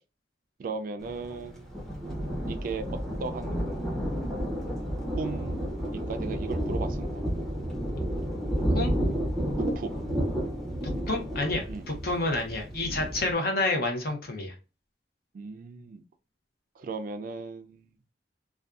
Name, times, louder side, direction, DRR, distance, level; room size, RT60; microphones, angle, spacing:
voice 1, 0.6-1.7 2.5-4.0 5.2-7.2 9.6-10.0 11.7-11.9 15.3-16.0 16.8-17.9, right 4 dB, 50° right, 0.3 m, -37 dB
Thunder, 1.0-13.3, equal, ahead, 0.5 m, -31 dB
voice 2, 10.8-14.5, left 2 dB, 60° left, 0.7 m, -29 dB
2.5 x 2.3 x 2.3 m
head